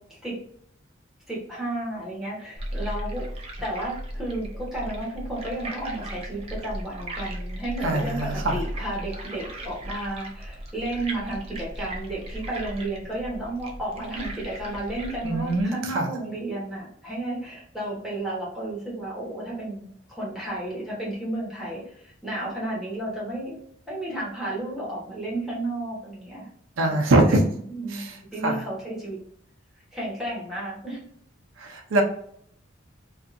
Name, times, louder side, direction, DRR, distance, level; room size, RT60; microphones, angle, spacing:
voice 1, 1.3-3.3 3.6-23.6 23.9-26.5 26.9-29.2 29.9-31.0, right 1 dB, ahead, -7 dB, 1.0 m, -32 dB
sound 1, 2.6-15.6, right 1 dB, 30° right, 0.5 m, -36 dB
voice 2, 7.8-8.6 15.2-16.1 26.8-27.4 27.9-28.2 28.4-28.6 31.6-32.0, right 2 dB, 90° right, 3 dB, 0.5 m, -23 dB
2.7 x 2.3 x 2.5 m, 0.66 s
head